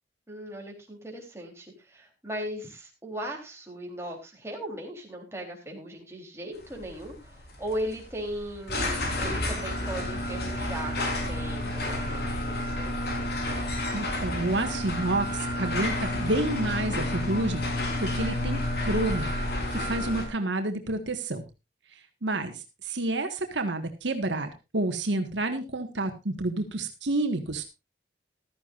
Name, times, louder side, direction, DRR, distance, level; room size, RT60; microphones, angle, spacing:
voice 1, 0.3-13.0, equal, 15° right, 0 dB, 3.7 m, -38 dB
sound 1, 6.6-20.3, left 1 dB, 60° left, 4.0 m, -30 dB
voice 2, 13.9-17.6 18.0-19.3 19.7-21.4 22.2-27.6, right 2 dB, 75° right, 6 dB, 1.7 m, -29 dB
15.0 x 13.0 x 2.6 m, 0.26 s
head